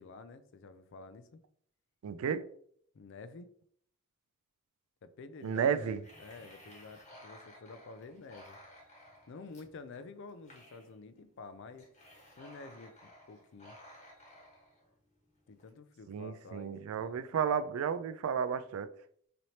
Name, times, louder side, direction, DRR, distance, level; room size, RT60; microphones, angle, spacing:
voice 1, 0.0-1.4 2.9-3.5 5.0-5.7 6.2-8.6 9.3-11.9 12.4-13.8 15.5-17.3, left 3 dB, 60° left, 0.4 m, -50 dB
voice 2, 2.0-2.4 5.4-6.0 16.1-18.9, right 7 dB, 85° right, 0.3 m, -32 dB
sound 1, 5.4-15.7, equal, 35° left, 1.1 m, -56 dB
4.2 x 3.2 x 2.7 m
head